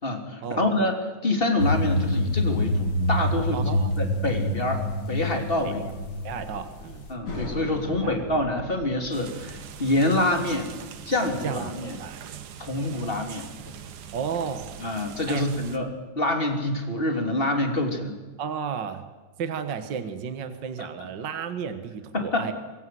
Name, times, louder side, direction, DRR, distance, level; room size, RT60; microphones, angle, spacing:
voice 1, 0.0-5.8 6.6-6.7 7.1-10.7 11.0-12.0 12.6-13.7 14.8-18.2 20.8-20.9 22.1-22.5, left 1 dB, 20° left, 4 dB, 3.0 m, -26 dB
sound 1, 1.6-7.1, left 1 dB, 40° left, 4.0 m, -26 dB
voice 2, 3.5-3.9 5.6-5.9 6.2-7.1 7.9-8.2 11.4-12.5 14.1-14.7 15.3-15.4 18.4-19.0 19.4-22.5, right 7 dB, 45° right, 9 dB, 1.7 m, -33 dB
sound 2, 7.2-12.6, left 2 dB, 80° left, 8.4 m, -39 dB
sound 3, 9.1-15.8, right 8 dB, 80° right, 2.9 m, -42 dB
26.0 x 21.5 x 7.7 m, 1.3 s
omnidirectional pair, 3.5 m